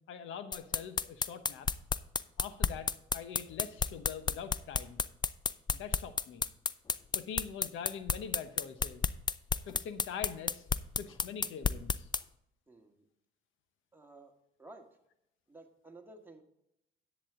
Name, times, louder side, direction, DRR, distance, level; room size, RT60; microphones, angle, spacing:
voice 1, 0.1-1.7 2.4-5.0 5.7-6.5 7.1-9.1 9.7-10.6 11.0-12.1, left 7 dB, 80° left, 10 dB, 1.1 m, -43 dB
sound 1, 0.5-12.2, left 5 dB, 20° left, 0.4 m, -31 dB
voice 2, 12.7-13.1 13.9-14.3 14.6-14.9 15.5-16.4, right 2 dB, 10° right, 2 dB, 1.8 m, -53 dB
10.5 x 8.3 x 3.7 m, 0.80 s
cardioid pair, 90°, 20 cm